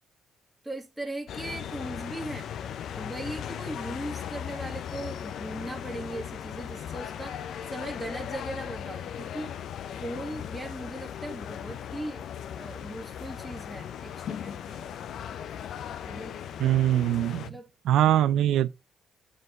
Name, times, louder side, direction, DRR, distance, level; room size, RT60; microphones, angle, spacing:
voice 1, 0.6-2.5 2.9-9.5 10.0-12.2 12.6-14.9 16.1-16.4 17.5-17.7, right 1 dB, 5° right, 1.9 m, -39 dB
sound 1, 1.3-17.5, left 9 dB, 70° left, 0.7 m, -38 dB
voice 2, 16.6-17.4 17.8-18.7, right 12 dB, 80° right, 0.7 m, -22 dB
7.9 x 4.0 x 5.3 m
cardioid pair, 90°, 0 cm